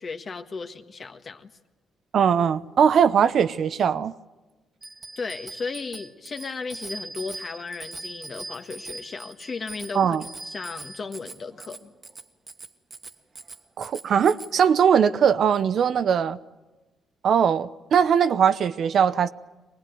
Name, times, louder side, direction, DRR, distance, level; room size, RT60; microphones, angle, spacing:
voice 1, 0.0-1.5 5.2-10.2 10.4-11.9, left 4 dB, 45° left, 1.6 m, -35 dB
voice 2, 2.1-4.1 9.9-10.2 13.8-16.4 17.2-19.3, right 7 dB, 60° right, 0.7 m, -20 dB
Bicycle bell, 4.8-14.5, right 2 dB, 35° right, 1.5 m, -41 dB
23.5 x 19.5 x 9.3 m
cardioid pair, 90°, 0 cm